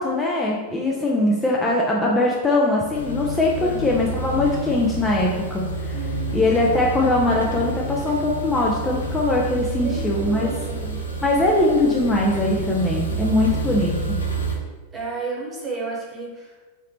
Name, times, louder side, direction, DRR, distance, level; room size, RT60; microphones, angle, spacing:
voice 1, 0.0-6.0 6.3-10.5 11.2-14.2, left 2 dB, 15° left, -3 dB, 0.5 m, -21 dB
sound 1, 2.9-14.6, right 2 dB, 75° left, 0.6 m, -29 dB
voice 2, 5.9-6.4 9.7-11.0 14.9-16.5, right 3 dB, 20° right, -3 dB, 1.1 m, -32 dB
3.7 x 3.2 x 3.0 m, 1.3 s
figure-of-eight pair, 90°, 0 cm